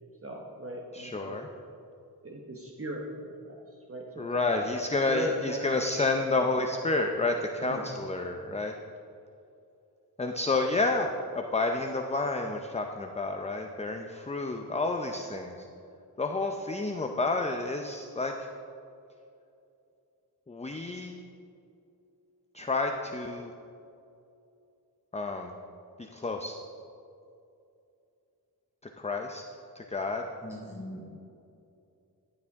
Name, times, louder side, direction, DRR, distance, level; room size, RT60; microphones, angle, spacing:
voice 1, 0.0-1.4 2.2-5.8 6.3-6.5 7.6-7.8, equal, 35° right, 0 dB, 1.0 m, -39 dB
voice 2, 0.9-1.5 4.2-8.7 10.2-11.1 11.3-15.5 16.2-18.3 20.5-21.2 22.5-23.5 25.1-25.5 26.1-26.5 29.0-29.4 29.8-30.2, left 3 dB, 15° left, 3 dB, 0.6 m, -30 dB
voice 3, 30.4-31.1, left 1 dB, 5° right, -3 dB, 3.1 m, -41 dB
14.0 x 10.0 x 3.6 m, 2.6 s
wide cardioid pair, 110°, 39 cm